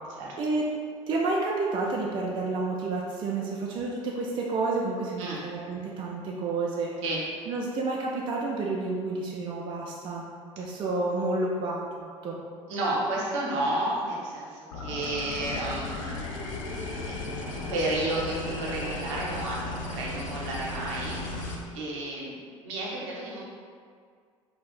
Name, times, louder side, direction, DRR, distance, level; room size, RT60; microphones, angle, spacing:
voice 1, 0.4-0.7 1.1-6.9 7.5-10.2 10.6-11.8 12.2-12.4, right 3 dB, 30° right, -2 dB, 0.3 m, -30 dB
voice 2, 12.7-16.5 17.0-17.2 17.5-23.4, right 1 dB, 65° right, -4 dB, 0.7 m, -32 dB
sound 1, 14.7-21.5, left 2 dB, 70° left, 0.5 m, -35 dB
2.3 x 2.1 x 3.4 m, 2.1 s
figure-of-eight pair, 65°, 17 cm